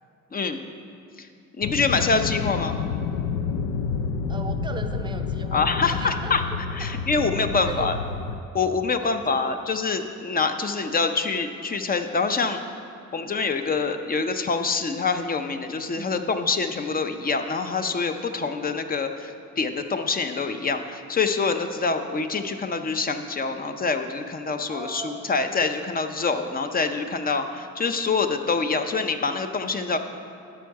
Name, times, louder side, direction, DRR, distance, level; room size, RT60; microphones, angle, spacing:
voice 1, 0.3-0.6 1.2-1.3 1.6-2.8 5.5-6.4 6.7-8.0 8.5-12.6 13.1-30.0, left 4 dB, 30° left, 7 dB, 0.5 m, -25 dB
sound 1, 1.6-8.4, left 5 dB, 85° left, 0.5 m, -29 dB
voice 2, 4.3-6.9 7.5-7.9 9.0-9.5 16.0-16.3 18.6-18.7 24.7-25.4, right 3 dB, 15° right, 7 dB, 0.6 m, -38 dB
12.5 x 4.6 x 4.7 m, 2.4 s
cardioid pair, 90°, 30 cm